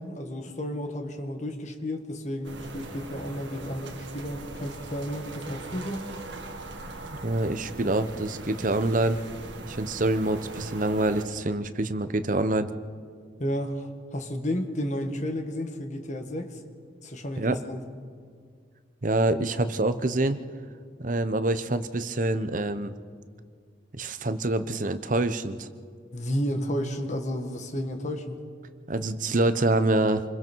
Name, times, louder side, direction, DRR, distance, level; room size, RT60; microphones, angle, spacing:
voice 1, 0.0-6.0 13.4-16.6 17.0-17.8 26.1-28.4, equal, 40° left, 5 dB, 1.9 m, -32 dB
sound 1, 2.4-11.3, right 2 dB, 75° right, 2.0 m, -40 dB
voice 2, 7.2-9.2 9.7-12.7 17.4-17.6 19.0-20.4 21.0-22.9 23.9-25.7 28.9-30.2, right 2 dB, 45° right, 11 dB, 0.9 m, -26 dB
27.5 x 22.0 x 4.6 m, 2.1 s
head